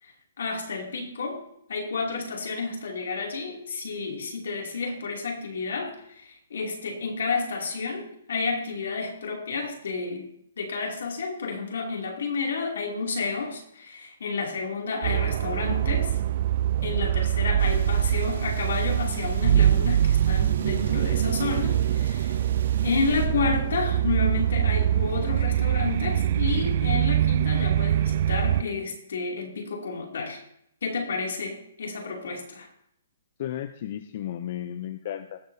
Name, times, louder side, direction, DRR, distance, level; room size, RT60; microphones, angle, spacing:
voice 1, 0.0-1.4 1.7-10.3 10.6-16.2 16.8-22.4 22.8-30.4 30.8-32.7, left 4 dB, 70° left, 0 dB, 2.6 m, -31 dB
sound 1, 15.0-28.6, right 11 dB, 40° right, 0.3 m, -24 dB
sound 2, 17.6-23.3, right 4 dB, 70° right, 2.8 m, -38 dB
voice 2, 33.4-35.4, left 11 dB, 40° left, 10 dB, 0.5 m, -34 dB
19.0 x 6.8 x 2.7 m, 0.75 s
hypercardioid pair, 170°, 0 cm